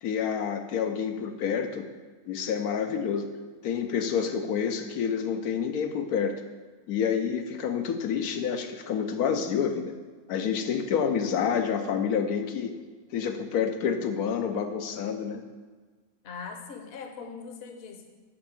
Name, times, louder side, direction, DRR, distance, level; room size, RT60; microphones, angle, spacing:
voice 1, 0.0-1.8 2.3-3.3 3.6-6.3 6.9-9.8 10.3-12.7 13.1-15.4, left 7 dB, 80° left, 6 dB, 1.1 m, -28 dB
voice 2, 16.2-18.1, left 5 dB, 50° left, 4 dB, 0.9 m, -41 dB
5.9 x 5.3 x 6.8 m, 1.4 s
omnidirectional pair, 1.6 m